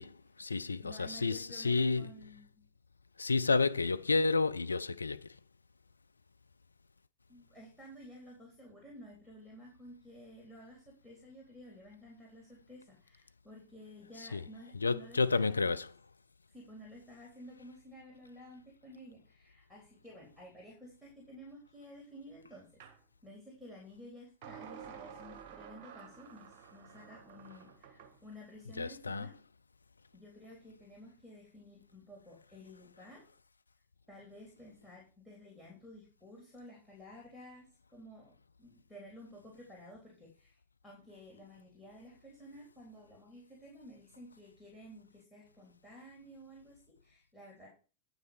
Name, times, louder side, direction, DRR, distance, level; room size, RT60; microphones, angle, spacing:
voice 1, 0.0-2.1 3.2-5.4 14.2-14.4 14.8-15.9 28.8-29.3, left 4 dB, 80° left, 0.4 m, -31 dB
voice 2, 0.8-2.6 7.3-15.7 16.5-22.7 23.2-29.3 30.1-33.3 34.1-47.7, equal, 5° left, 3.5 m, -53 dB
sound 1, 22.8-23.0 24.4-28.2, right 7 dB, 45° right, 1.5 m, -51 dB
9.0 x 5.9 x 5.1 m
figure-of-eight pair, 90°, 0 cm